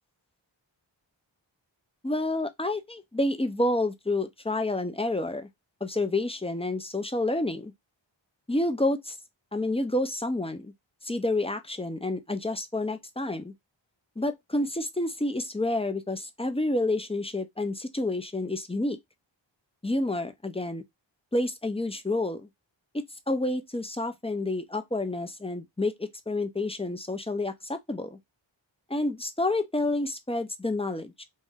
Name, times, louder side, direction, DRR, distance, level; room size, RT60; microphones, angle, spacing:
voice 1, 2.0-5.5 5.8-7.7 8.5-9.2 9.5-10.7 11.0-13.5 14.2-19.0 19.8-20.8 21.3-22.5 23.3-28.2 28.9-31.2, left 2 dB, 15° left, 0.6 m, -29 dB
3.2 x 2.6 x 3.5 m
wide cardioid pair, 50°, 46 cm